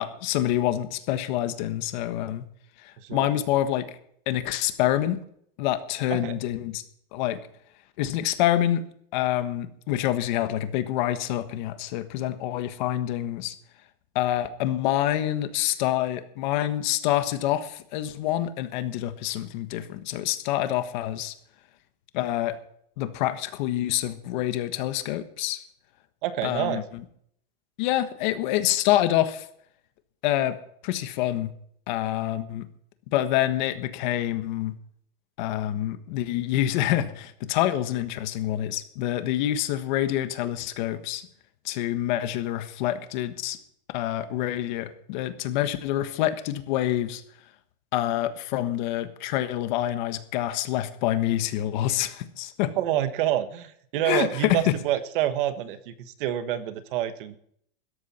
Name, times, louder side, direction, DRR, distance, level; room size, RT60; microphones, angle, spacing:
voice 1, 0.0-2.4 2.8-3.9 4.3-5.2 5.6-6.8 7.1-7.4 8.0-8.8 9.1-13.5 14.1-21.3 22.1-22.6 23.0-25.6 26.4-27.0 27.8-29.5 30.2-30.6 30.8-31.5 31.9-32.7 33.1-34.7 35.4-41.2 41.6-43.6 43.9-47.2 47.9-52.7 54.0-54.8, left 13 dB, 50° left, 10 dB, 1.4 m, -26 dB
voice 2, 26.2-26.8 52.8-57.4, right 12 dB, 55° right, 10 dB, 1.5 m, -27 dB
16.5 x 13.5 x 4.4 m, 0.66 s
supercardioid pair, 170°, 31 cm